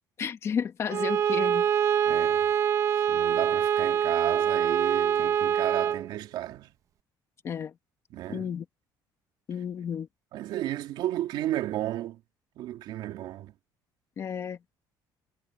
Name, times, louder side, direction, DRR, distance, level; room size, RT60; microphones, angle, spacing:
voice 1, 0.2-1.7 7.4-7.7 8.3-8.7 9.5-10.1 14.2-14.6, left 7 dB, 35° left, 1.8 m, -32 dB
Bowed string instrument, 0.9-6.1, right 8 dB, 40° right, 1.3 m, -25 dB
voice 2, 2.1-2.5 2.9-6.7 8.1-8.5 10.3-12.2 12.6-13.5, right 13 dB, 65° right, 2.7 m, -33 dB
cardioid pair, 170°, 8 cm